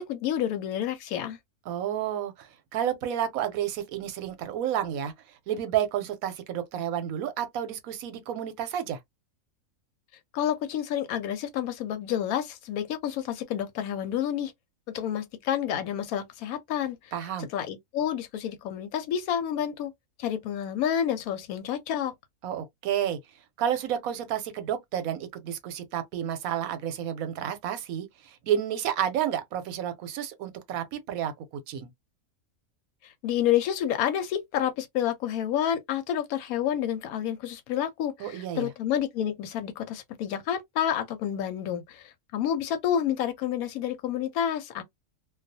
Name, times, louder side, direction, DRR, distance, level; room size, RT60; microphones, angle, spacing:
voice 1, 0.0-1.4 10.3-14.5 14.9-17.1 17.4-19.9 20.2-22.1 33.0-44.8, left 10 dB, 85° left, 1.0 m, -29 dB
voice 2, 1.7-5.1 5.5-9.0 17.1-17.5 22.4-23.2 23.6-31.3 31.7-31.9 38.2-38.7, right 10 dB, 90° right, 1.1 m, -30 dB
2.3 x 2.3 x 2.6 m
omnidirectional pair, 1.5 m